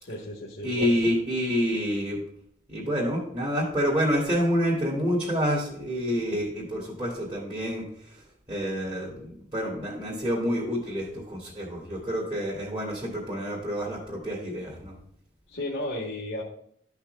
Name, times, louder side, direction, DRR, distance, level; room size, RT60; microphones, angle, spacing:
voice 1, 0.0-0.9 15.5-16.4, left 1 dB, 85° left, -4 dB, 1.4 m, -34 dB
voice 2, 0.6-2.2 2.7-7.9 8.1-8.2 8.5-14.9, equal, 25° right, -6 dB, 2.2 m, -28 dB
13.0 x 5.8 x 2.3 m, 0.67 s
head